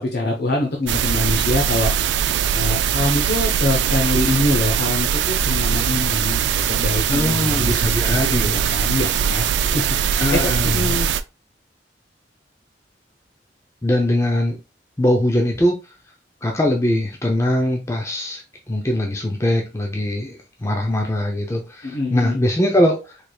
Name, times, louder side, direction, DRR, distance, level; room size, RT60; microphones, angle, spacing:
voice 1, 0.0-1.9 2.5-7.8 8.5-11.1 21.8-22.4, left 2 dB, 65° left, 0.8 m, -24 dB
sound 1, 0.9-11.2, right 8 dB, 80° right, 0.3 m, -21 dB
voice 2, 7.1-8.7 10.2-11.0 13.8-14.6 15.0-15.8 16.4-23.1, left 1 dB, 15° left, 0.5 m, -21 dB
4.5 x 3.3 x 2.2 m
head